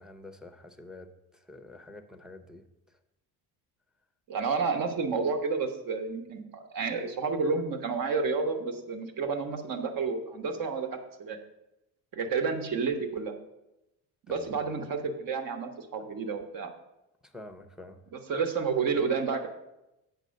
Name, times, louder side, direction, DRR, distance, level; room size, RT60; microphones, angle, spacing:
voice 1, 0.0-2.6 14.3-14.4 17.2-18.0, left 2 dB, ahead, 8 dB, 0.6 m, -47 dB
voice 2, 4.3-11.4 12.1-13.3 14.3-16.7 18.1-19.5, right 5 dB, 55° right, 6 dB, 1.3 m, -30 dB
8.4 x 5.4 x 6.3 m, 0.93 s
cardioid pair, 130°, 40 cm